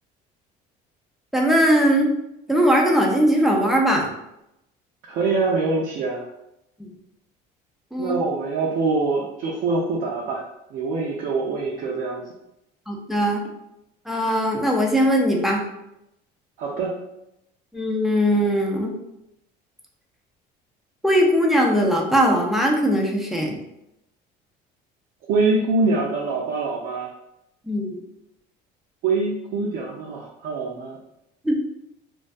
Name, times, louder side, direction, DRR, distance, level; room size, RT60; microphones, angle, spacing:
voice 1, 1.3-2.1 2.5-4.1 6.8-6.9 7.9-8.1 12.9-13.4 14.1-15.6 17.7-19.0 21.0-23.6 27.7-28.0 31.4-31.6, equal, ahead, -1 dB, 0.3 m, -20 dB
voice 2, 5.1-6.3 8.0-10.4 10.7-12.2 16.6-16.9 25.3-27.1 29.0-31.0, right 3 dB, 65° right, -3 dB, 0.5 m, -24 dB
2.3 x 2.2 x 2.5 m, 0.85 s
cardioid pair, 130°, 19 cm